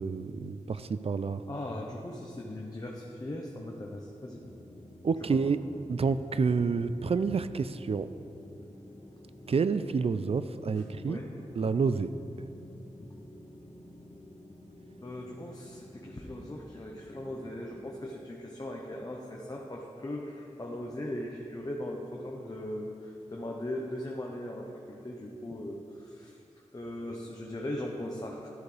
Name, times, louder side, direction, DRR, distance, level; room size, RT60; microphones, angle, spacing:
voice 1, 0.0-1.4 5.0-5.6 5.9-8.1 9.5-11.2 11.6-12.1, right 5 dB, 50° right, 12 dB, 0.4 m, -29 dB
voice 2, 1.5-4.4 11.1-11.3 15.0-26.4 26.7-28.5, left 1 dB, 30° left, -1 dB, 0.9 m, -39 dB
sound 1, 4.3-18.1, left 1 dB, 60° left, 2.2 m, -50 dB
13.0 x 8.1 x 3.4 m, 2.8 s
wide cardioid pair, 65°, 12 cm